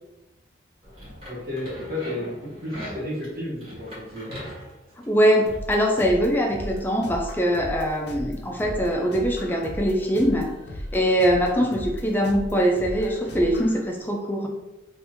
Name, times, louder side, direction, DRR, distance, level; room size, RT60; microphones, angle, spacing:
sound 1, 0.8-5.6, equal, 30° right, 1.3 m, -40 dB
voice 1, 1.3-4.3, left 1 dB, 50° right, -6 dB, 1.2 m, -32 dB
voice 2, 5.0-10.5 10.9-14.5, equal, 10° left, 1 dB, 0.3 m, -22 dB
sound 2, 5.5-13.8, equal, 60° left, 0.5 m, -37 dB
3.0 x 2.5 x 3.4 m, 0.99 s
head